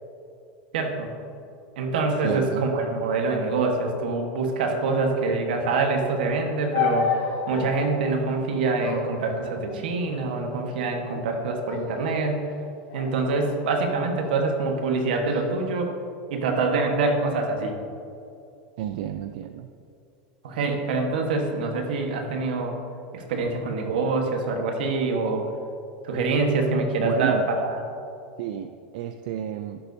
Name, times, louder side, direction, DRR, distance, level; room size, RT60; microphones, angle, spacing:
voice 1, 0.7-1.1 1.8-12.5 12.9-15.9 16.3-17.8 20.4-22.8 23.1-25.5 26.0-27.8, right 3 dB, 85° right, 3 dB, 1.3 m, -25 dB
voice 2, 2.2-2.7 18.8-19.7 27.0-27.5 28.4-29.8, right 11 dB, 65° right, 8 dB, 0.3 m, -31 dB
sound 1, 6.7-8.0 8.8-10.0 10.8-11.3 11.6-12.2 12.9-14.2 15.0-15.4, left 5 dB, 60° left, 1.4 m, -31 dB
11.0 x 7.0 x 2.7 m, 2.6 s
supercardioid pair, 155°, 5 cm